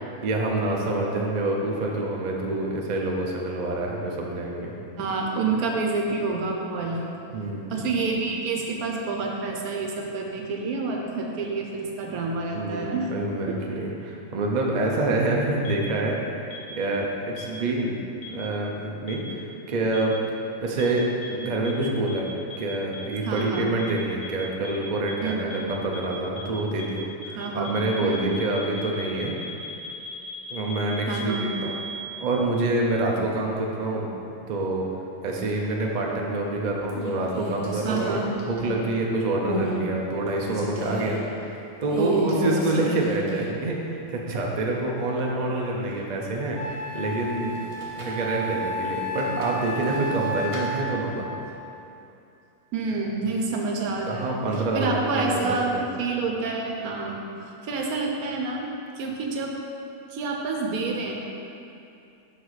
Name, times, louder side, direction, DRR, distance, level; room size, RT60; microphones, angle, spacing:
voice 1, 0.2-4.7 7.3-7.8 12.5-18.0 18.3-20.2 20.6-22.3 22.6-29.4 30.5-31.7 32.2-34.1 34.5-34.9 35.2-38.2 38.5-41.2 41.8-47.6 47.9-51.3 54.0-55.9, right 2 dB, 50° right, -1 dB, 0.5 m, -27 dB
voice 2, 5.0-7.2 7.7-13.1 13.5-13.6 14.7-14.8 23.2-23.7 25.2-25.7 27.4-27.7 28.0-28.4 31.1-31.5 37.8-38.3 42.0-42.6 52.7-57.2 57.6-58.7 59.0-59.5 60.1-61.1, right 3 dB, 75° right, 1 dB, 1.2 m, -28 dB
sound 1, 15.7-15.8 16.5-16.6 17.4-17.5 18.2-18.3 19.1-19.2 19.9-20.0 20.8-20.9 21.2-21.3 21.7-21.8 22.1-22.2 22.5-22.6 22.9-23.0 23.4-23.5 23.8-23.9 24.2-24.3 24.7-24.8 25.1-25.2 25.5-25.6 25.9-26.0 26.4-26.5 26.8-26.9 27.2-27.3 27.7-32.0, left 1 dB, 75° left, 1.4 m, -38 dB
sound 2, 36.1-36.5 36.9-39.0 39.4-39.8 40.2-41.2 41.9-43.6 44.0-44.1 47.5-48.2 49.1-50.7, right 1 dB, 25° right, 0.8 m, -34 dB
Wind instrument woodwind instrument, 45.9-46.0 46.5-51.2, right 1 dB, 40° left, 0.4 m, -32 dB
5.8 x 4.7 x 4.0 m, 2.7 s
omnidirectional pair, 1.6 m